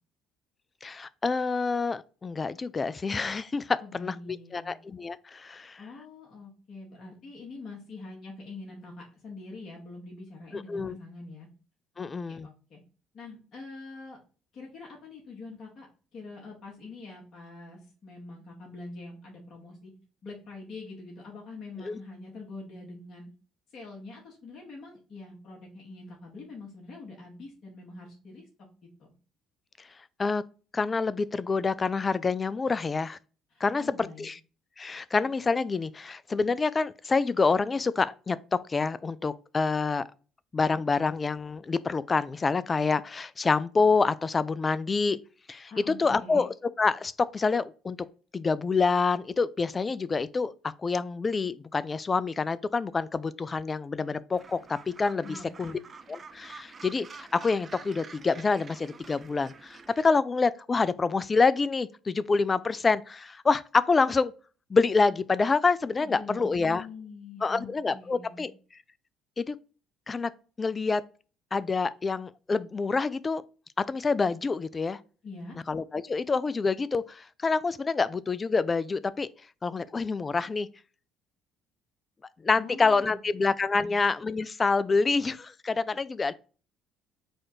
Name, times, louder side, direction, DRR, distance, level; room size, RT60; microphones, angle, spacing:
voice 1, 0.8-4.1 4.5-5.8 10.5-11.0 12.0-12.5 21.8-22.0 30.2-30.4 30.7-33.2 33.6-34.4 34.8-40.0 40.5-45.2 45.5-48.0 48.3-55.7 56.1-64.3 64.7-66.8 67.4-68.5 69.4-69.6 70.1-70.3 70.6-71.0 71.5-73.4 73.8-75.0 75.7-79.3 79.6-80.7 82.4-86.3, left 4 dB, 30° left, 0.3 m, -27 dB
voice 2, 3.8-4.7 5.8-11.5 11.9-12.8 13.1-14.2 14.5-15.9 16.1-19.9 20.2-23.3 23.7-28.4 29.0-29.1 33.5-34.3 45.7-46.5 55.2-55.8 65.9-68.5 75.2-75.6 82.6-83.2 83.7-83.9, left 3 dB, 55° left, 1.8 m, -44 dB
Gull seagull, 54.3-60.1, right 5 dB, 35° right, 0.5 m, -48 dB
4.2 x 2.5 x 4.5 m
supercardioid pair, 75°, 0 cm